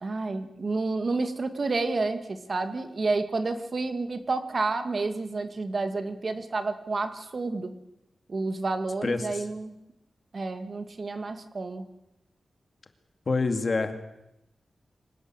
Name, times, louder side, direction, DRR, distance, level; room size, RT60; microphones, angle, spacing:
voice 1, 0.0-7.8 8.3-9.7 10.3-11.9, right 3 dB, 40° right, 8 dB, 2.0 m, -30 dB
voice 2, 9.0-9.4 13.3-13.9, left 3 dB, 40° left, 7 dB, 2.3 m, -27 dB
25.5 x 18.0 x 8.9 m, 0.87 s
wide cardioid pair, 165°, 0 cm